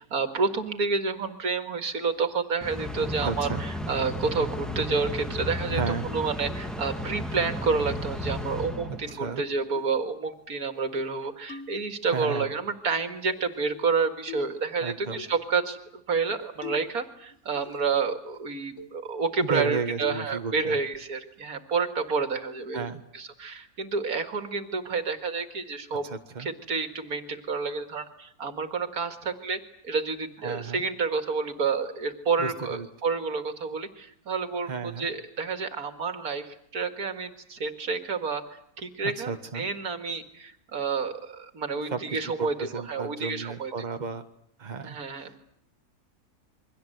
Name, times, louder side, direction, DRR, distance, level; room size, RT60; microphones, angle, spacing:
voice 1, 0.1-22.9 23.1-26.0 26.4-43.9 44.8-45.4, right 4 dB, 80° right, 8 dB, 2.4 m, -29 dB
sound 1, 2.6-9.4, left 1 dB, ahead, 2.2 m, -34 dB
voice 2, 3.2-3.6 5.7-6.1 8.9-9.4 12.1-12.5 14.8-15.2 19.4-20.8 22.7-23.0 26.0-26.5 30.4-30.8 32.4-32.9 34.7-35.1 39.0-39.6 41.8-44.2 44.6-45.4, right 5 dB, 30° right, 7 dB, 1.6 m, -33 dB
sound 2, 9.1-9.2 9.8-10.0 10.3-10.4 10.8-11.1 11.5-12.2 13.3-13.9 14.3-14.6 15.2-15.4 16.4-17.0 17.3-18.0 18.3-18.4 18.8-19.0 19.4-19.5 20.0-20.3 20.6-21.0, left 6 dB, 60° left, 2.2 m, -43 dB
28.0 x 23.5 x 8.0 m, 0.71 s
omnidirectional pair, 1.5 m